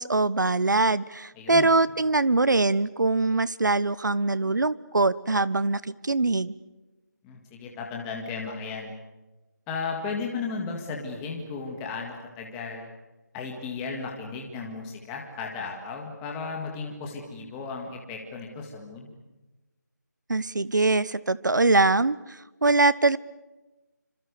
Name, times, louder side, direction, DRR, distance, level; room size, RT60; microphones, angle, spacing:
voice 1, 0.0-6.5 20.3-23.2, right 3 dB, 80° right, 18 dB, 1.2 m, -23 dB
voice 2, 1.4-1.7 7.2-8.9 9.7-12.9 13.3-19.1, left 4 dB, 5° left, 0 dB, 1.9 m, -35 dB
27.5 x 26.5 x 6.9 m, 1.1 s
figure-of-eight pair, 175°, 10 cm